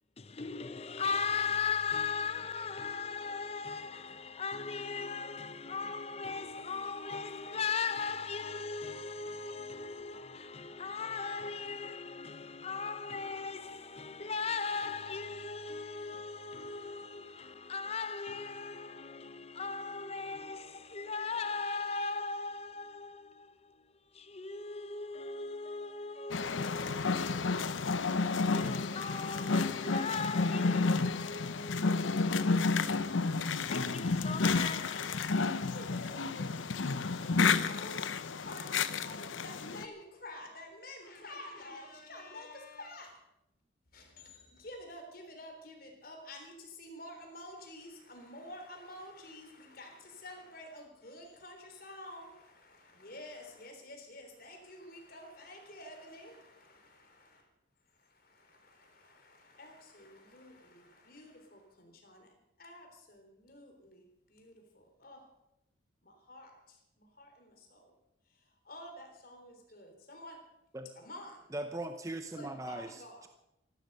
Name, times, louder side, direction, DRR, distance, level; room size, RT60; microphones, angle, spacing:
voice 1, 0.2-35.7 36.9-37.2, left 5 dB, 30° left, 0.7 m, -38 dB
sound 1, 26.3-39.8, left 4 dB, 80° left, 0.7 m, -31 dB
voice 2, 35.7-36.7 37.1-43.2 43.9-57.5 57.9-65.3 66.0-67.9 68.3-70.4 71.0-71.5 72.3-73.3, left 1 dB, 50° left, 3.6 m, -50 dB
voice 3, 71.5-73.3, right 1 dB, 15° right, 0.7 m, -40 dB
15.5 x 12.0 x 6.7 m
head